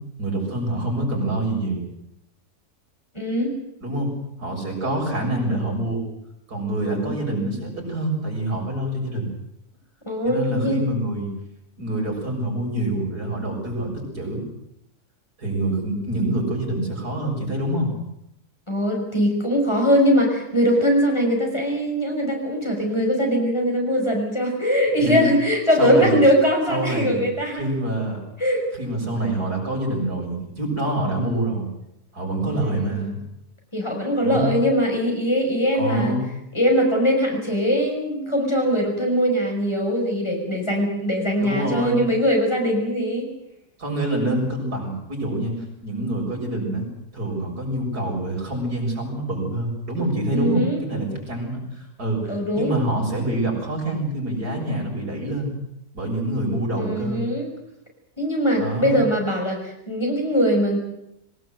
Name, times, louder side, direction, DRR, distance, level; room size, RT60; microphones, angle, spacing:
voice 1, 0.2-1.8 3.8-4.1 4.4-6.0 6.5-9.3 10.2-11.3 11.8-14.4 15.4-17.9 25.0-25.3 25.8-26.2 26.7-27.2 27.5-28.2 28.8-31.7 32.1-33.2 34.2-34.5 35.8-36.2 41.4-42.0 43.8-55.5 55.9-57.2 58.6-59.1, right 1 dB, 80° right, -1 dB, 7.5 m, -26 dB
voice 2, 3.1-3.6 6.9-7.1 10.1-10.8 18.7-27.7 28.4-28.6 32.5-33.1 33.7-36.1 36.5-43.3 50.3-50.8 52.3-52.7 56.8-57.5 58.2-60.8, equal, 15° left, 0 dB, 5.7 m, -21 dB
23.0 x 19.0 x 8.0 m, 0.81 s
omnidirectional pair, 1.7 m